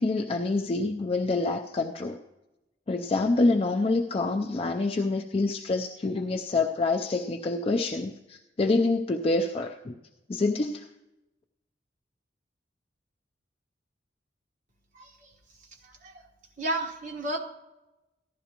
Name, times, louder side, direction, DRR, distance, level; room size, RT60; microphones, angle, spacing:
voice 1, 0.0-2.2 2.9-10.0 10.3-10.9, left 3 dB, 30° left, 3 dB, 0.4 m, -26 dB
voice 2, 14.9-15.3 15.8-16.2 16.6-17.4, right 1 dB, 45° right, 1 dB, 1.2 m, -33 dB
15.0 x 11.0 x 2.9 m, 1.0 s
head